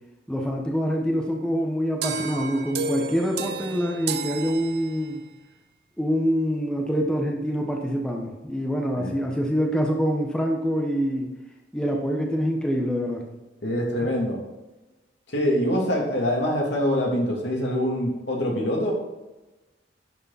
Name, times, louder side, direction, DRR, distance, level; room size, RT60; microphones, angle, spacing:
voice 1, 0.3-5.2 6.0-11.3 11.7-13.3 14.0-14.1, equal, 5° left, 0 dB, 1.2 m, -25 dB
sound 1, 2.0-5.3, right 4 dB, 60° right, 0.7 m, -32 dB
voice 2, 13.6-14.4 15.3-18.9, equal, 70° left, -2 dB, 3.1 m, -24 dB
11.5 x 6.8 x 4.2 m, 1.1 s
head